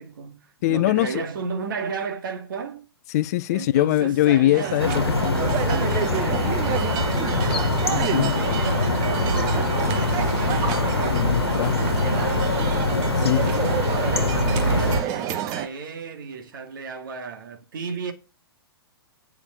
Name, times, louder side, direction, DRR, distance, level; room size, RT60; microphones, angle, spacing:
voice 1, 0.0-2.9 3.5-5.1 5.6-7.7 8.2-12.7 13.2-18.1, right 5 dB, 55° right, 2.2 m, -34 dB
voice 2, 0.6-1.2 3.1-5.4 7.9-8.4 11.1-11.8 13.2-13.5, left 15 dB, 40° left, 0.6 m, -22 dB
sound 1, 4.5-15.7, right 10 dB, 30° right, 1.2 m, -29 dB
sound 2, 4.8-15.0, left 3 dB, 80° left, 1.5 m, -24 dB
9.8 x 5.8 x 5.9 m
figure-of-eight pair, 115°, 13 cm